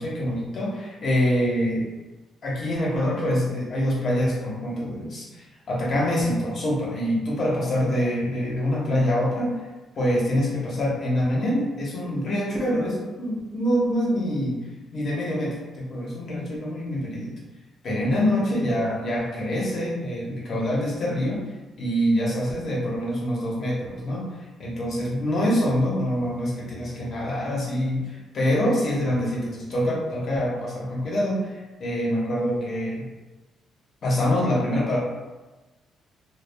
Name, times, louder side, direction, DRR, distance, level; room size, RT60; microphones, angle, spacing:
voice 1, 0.0-1.9 2.4-9.6 9.9-14.6 14.9-17.3 17.8-21.4 21.8-24.3 24.6-33.0 34.0-35.0, equal, 50° left, -4 dB, 0.9 m, -25 dB
2.2 x 2.0 x 3.3 m, 1.2 s
cardioid pair, 90°, 0 cm